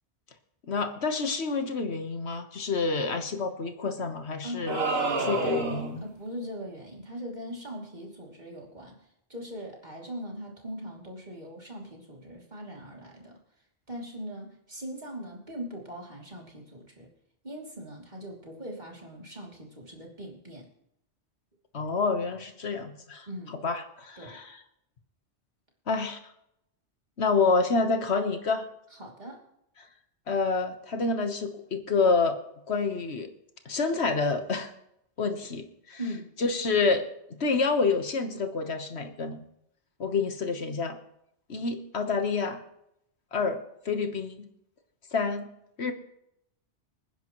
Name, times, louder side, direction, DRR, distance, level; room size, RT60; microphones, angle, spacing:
voice 1, 0.7-4.8 5.2-6.0 21.7-24.6 25.9-26.2 27.2-28.7 29.8-29.9 30.3-32.4 32.7-33.3 33.6-34.7 35.2-36.0 36.4-37.1 37.4-39.4 40.0-41.0 41.5-42.6 43.3-44.5 45.1-45.5 45.8-45.9, left 4 dB, 70° left, 7 dB, 1.5 m, -28 dB
voice 2, 4.4-4.8 6.0-8.9 9.3-13.4 13.9-17.1 17.4-20.7 23.3-23.6 24.2-24.4 29.0-29.4 36.0-36.3, equal, 40° right, -1 dB, 3.0 m, -40 dB
sound 1, 4.7-6.0, right 3 dB, 65° right, 1.8 m, -28 dB
26.0 x 10.0 x 3.1 m, 0.78 s
omnidirectional pair, 1.1 m